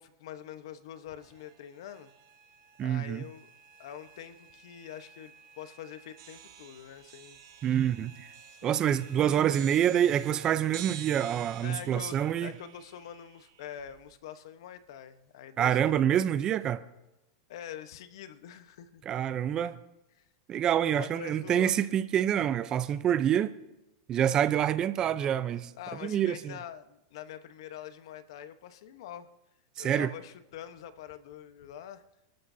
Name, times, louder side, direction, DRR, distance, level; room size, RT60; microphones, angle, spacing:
voice 1, 0.0-2.1 2.8-3.5 3.8-7.4 7.6-7.8 8.5-9.0 9.5-9.6 11.6-16.0 17.5-19.0 20.1-20.2 20.9-21.9 25.8-29.3 29.8-32.0, left 10 dB, 70° left, 1.1 m, -45 dB
sound 1, 1.2-12.0, right 6 dB, 50° right, 3.9 m, -56 dB
voice 2, 2.8-3.2 7.6-8.3 8.6-12.5 15.6-16.8 19.1-19.8 20.5-23.5 24.1-25.7 26.0-26.5 29.8-30.1, right 10 dB, 25° right, 0.7 m, -27 dB
sound 2, 6.2-14.1, right 11 dB, 70° right, 2.6 m, -49 dB
30.0 x 13.0 x 2.8 m
supercardioid pair, 145°, 3 cm